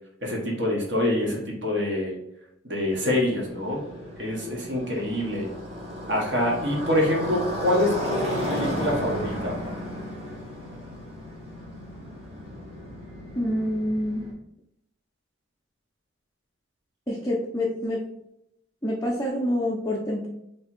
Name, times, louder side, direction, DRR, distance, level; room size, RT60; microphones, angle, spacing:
voice 1, 0.2-2.2 2.6-3.8 4.2-5.5 6.1-9.6, left 1 dB, 60° right, -2 dB, 1.2 m, -26 dB
Motorcycle, 2.9-14.3, equal, 30° right, 1.0 m, -34 dB
voice 2, 13.4-14.2 17.1-18.0 18.8-20.3, left 1 dB, 15° left, -5 dB, 0.6 m, -27 dB
3.3 x 2.9 x 4.4 m, 0.79 s
head